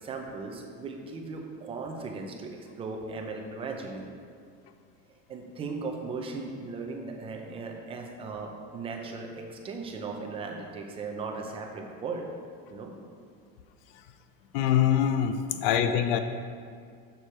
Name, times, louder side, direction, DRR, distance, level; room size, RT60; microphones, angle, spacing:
voice 1, 0.0-2.5 2.8-4.1 5.3-12.3 12.7-12.9 15.5-15.7, right 4 dB, 20° right, 2 dB, 0.5 m, -37 dB
voice 2, 14.5-15.4 15.6-16.2, left 10 dB, 75° left, 9 dB, 0.5 m, -23 dB
6.8 x 6.4 x 4.3 m, 2.2 s
cardioid pair, 180°, 30 cm